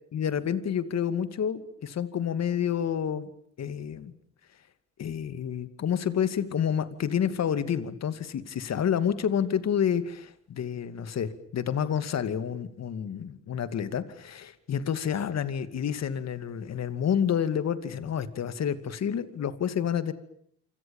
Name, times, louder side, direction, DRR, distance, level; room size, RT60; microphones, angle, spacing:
voice 1, 0.1-3.3 3.6-4.1 5.0-20.1, left 8 dB, 60° left, 12 dB, 2.5 m, -29 dB
27.5 x 26.5 x 7.3 m, 0.68 s
cardioid pair, 90°, 30 cm